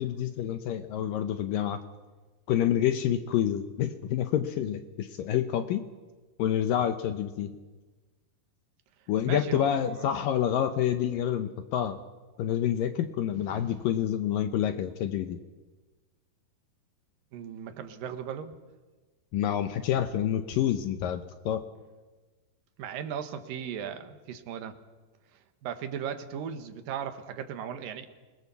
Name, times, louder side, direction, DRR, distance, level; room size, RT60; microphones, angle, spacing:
voice 1, 0.0-1.8 2.5-5.8 6.4-7.5 9.1-12.0 12.4-15.4 19.3-21.2 21.5-21.6, left 10 dB, 75° left, 9 dB, 2.2 m, -28 dB
voice 2, 9.2-10.1 13.3-13.9 17.3-18.5 22.8-24.8 25.3-28.1, right 8 dB, 65° right, 8 dB, 2.8 m, -37 dB
26.0 x 20.5 x 7.0 m, 1.3 s
omnidirectional pair, 4.7 m